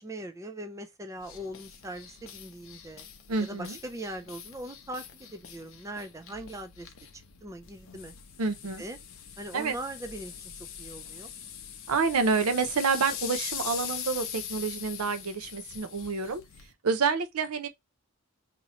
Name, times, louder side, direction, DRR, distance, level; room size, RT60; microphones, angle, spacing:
voice 1, 0.0-3.1 3.4-8.1 8.8-9.0 9.4-10.3 10.8-11.3, right 1 dB, 15° right, 0.3 m, -40 dB
sound 1, 1.2-16.7, left 9 dB, 60° left, 0.6 m, -42 dB
voice 2, 3.3-3.7 8.4-8.8 9.5-9.7 11.9-16.4 16.8-17.7, right 5 dB, 75° right, 0.6 m, -28 dB
2.9 x 2.6 x 4.1 m
head